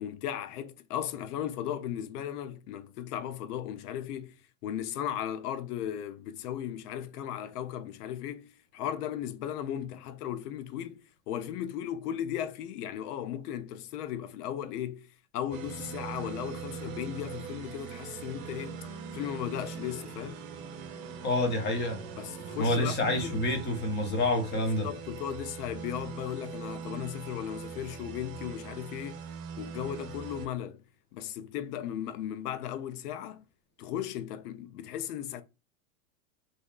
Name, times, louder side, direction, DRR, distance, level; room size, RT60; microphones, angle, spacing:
voice 1, 0.0-4.4 4.6-15.1 15.3-18.8 19.1-20.5 22.2-23.4 24.8-29.2 29.6-30.8 31.1-33.4 33.8-35.4, left 10 dB, 70° left, 0.6 m, -36 dB
sound 1, 15.5-30.5, right 6 dB, 55° right, 0.9 m, -42 dB
voice 2, 21.2-22.0 22.6-24.9, left 1 dB, 20° left, 0.8 m, -28 dB
2.7 x 2.4 x 2.3 m
hypercardioid pair, 120°, 48 cm